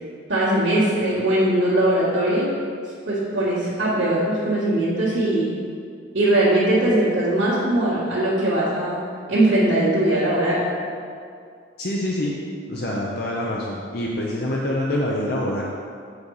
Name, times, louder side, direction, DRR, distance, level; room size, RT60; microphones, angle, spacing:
voice 1, 0.3-2.5 3.1-5.5 6.1-9.0 9.3-10.6, right 1 dB, 70° right, -13 dB, 1.9 m, -20 dB
voice 2, 11.8-12.4 12.7-15.6, left 1 dB, 50° left, -3 dB, 0.7 m, -25 dB
7.9 x 5.3 x 4.8 m, 2.2 s
head